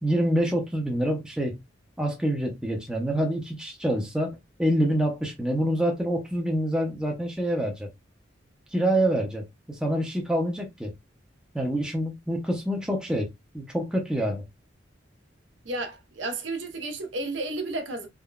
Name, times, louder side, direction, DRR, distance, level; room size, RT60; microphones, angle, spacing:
voice 1, 0.0-1.5 2.0-7.9 8.7-10.9 11.5-13.3 13.5-14.4, right 1 dB, 5° right, 0.5 m, -26 dB
voice 2, 15.6-18.1, right 2 dB, 70° right, 0.7 m, -32 dB
3.6 x 2.1 x 2.2 m
head